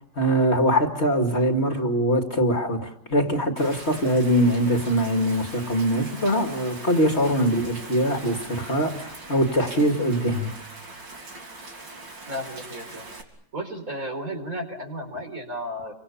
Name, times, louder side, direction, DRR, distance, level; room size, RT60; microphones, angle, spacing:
voice 1, 0.2-10.6, equal, 35° left, 2.5 m, -22 dB
Rain, 3.6-13.2, right 2 dB, 70° right, 4.1 m, -41 dB
voice 2, 12.3-13.1 13.5-15.9, equal, 45° right, 4.9 m, -33 dB
29.5 x 25.0 x 7.2 m
omnidirectional pair, 2.0 m